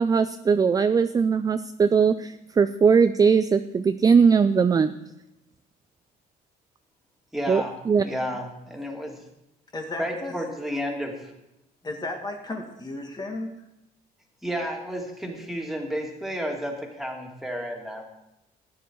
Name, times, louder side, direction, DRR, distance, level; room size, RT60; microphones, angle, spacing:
voice 1, 0.0-4.9 7.5-8.0, right 5 dB, 20° right, 11 dB, 0.4 m, -20 dB
voice 2, 7.3-9.2 10.0-11.3 14.4-18.0, equal, ahead, 0 dB, 2.6 m, -32 dB
voice 3, 9.7-10.3 11.8-13.5, left 2 dB, 25° left, 3 dB, 1.7 m, -34 dB
14.0 x 9.5 x 4.6 m, 0.86 s
cardioid pair, 110°, 17 cm